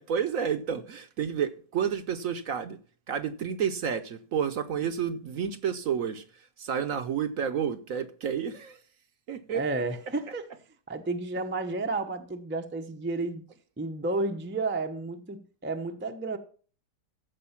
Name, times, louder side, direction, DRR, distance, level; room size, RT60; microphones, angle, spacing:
voice 1, 0.0-2.8 3.1-6.2 6.6-8.8 9.3-9.6, right 7 dB, 60° right, 1.1 m, -30 dB
voice 2, 9.5-10.5 10.9-13.4 13.8-16.4, right 3 dB, 10° right, 0.5 m, -31 dB
14.5 x 5.3 x 5.7 m
omnidirectional pair, 1.8 m